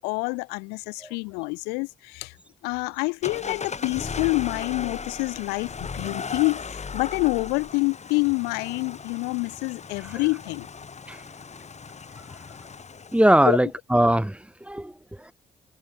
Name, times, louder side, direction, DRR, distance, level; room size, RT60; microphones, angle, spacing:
voice 1, 0.0-2.3 2.6-10.7 13.4-13.6, left 30 dB, 85° left, 1.6 m, -27 dB
sound 1, 3.2-13.5, left 5 dB, 45° left, 6.7 m, -37 dB
voice 2, 13.1-15.3, right 1 dB, 5° right, 2.2 m, -21 dB
hypercardioid pair, 45°, 17 cm